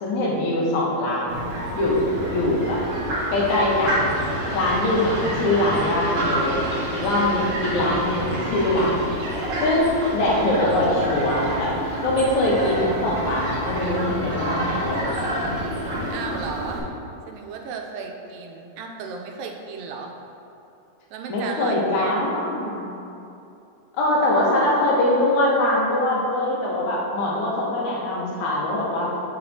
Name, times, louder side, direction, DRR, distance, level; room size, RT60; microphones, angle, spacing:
voice 1, 0.0-1.5 1.8-2.8 3.3-4.2 4.5-6.6 6.9-9.0 9.6-11.8 12.0-15.5 21.3-22.8 24.0-29.1, left 1 dB, 65° left, -4 dB, 2.1 m, -22 dB
Fowl, 1.3-16.8, right 1 dB, 55° right, 1.9 m, -28 dB
voice 2, 16.1-16.9 17.3-20.2 21.1-22.2, right 5 dB, 85° right, 2 dB, 2.3 m, -34 dB
7.7 x 5.9 x 2.7 m, 2.7 s
omnidirectional pair, 4.0 m